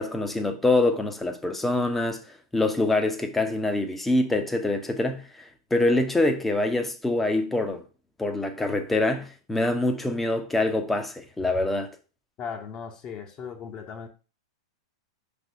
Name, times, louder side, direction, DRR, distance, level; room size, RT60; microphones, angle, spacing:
voice 1, 0.0-2.2 2.5-7.8 8.2-11.9, left 2 dB, 5° left, 0.9 m, -25 dB
voice 2, 12.4-14.1, left 6 dB, 30° left, 1.1 m, -37 dB
5.8 x 3.6 x 5.8 m
figure-of-eight pair, 95°, 2 cm